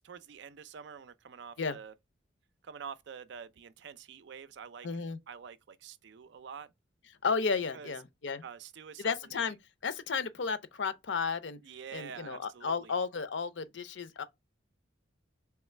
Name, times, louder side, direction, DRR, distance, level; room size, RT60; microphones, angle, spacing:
voice 1, 0.0-1.9 2.6-4.9 5.3-6.7 7.7-7.9 8.4-9.5 11.6-12.9, right 7 dB, 65° right, 0.4 m, -47 dB
voice 2, 4.8-5.2 7.2-8.4 9.0-9.6 9.8-11.6 11.9-14.2, left 5 dB, 70° left, 0.6 m, -33 dB
3.5 x 3.2 x 3.1 m
head